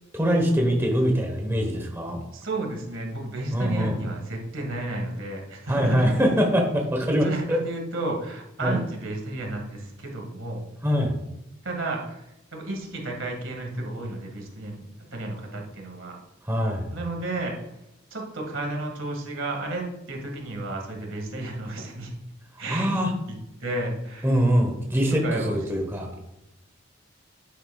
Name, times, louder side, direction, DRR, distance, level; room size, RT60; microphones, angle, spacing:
voice 1, 0.1-2.2 3.5-3.9 5.7-7.6 8.6-8.8 10.8-11.2 16.5-16.9 22.7-23.1 24.2-26.1, equal, 10° right, 2 dB, 1.1 m, -23 dB
voice 2, 2.3-6.1 7.1-10.7 11.6-14.8 15.1-16.2 16.9-17.6 18.1-22.1 22.6-24.4 25.2-25.7, right 2 dB, 85° right, 1 dB, 1.8 m, -32 dB
9.5 x 7.9 x 2.3 m, 0.86 s
head